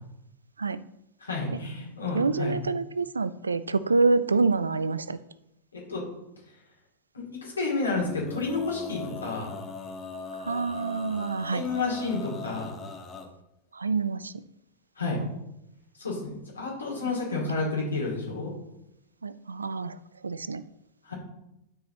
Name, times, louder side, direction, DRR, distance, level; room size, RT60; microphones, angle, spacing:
voice 1, 1.2-2.6 5.7-6.0 7.1-9.5 11.5-12.7 15.0-15.2 16.0-16.3 16.5-18.5 21.0-21.1, left 3 dB, 75° left, -3 dB, 2.7 m, -30 dB
voice 2, 2.1-5.2 10.4-11.6 13.7-14.4 19.2-20.0 20.2-20.6, right 4 dB, 75° right, 17 dB, 0.3 m, -27 dB
Male singing, 7.9-13.3, left 4 dB, 20° left, 1.1 m, -40 dB
11.5 x 4.7 x 3.0 m, 0.85 s
figure-of-eight pair, 90°, 0 cm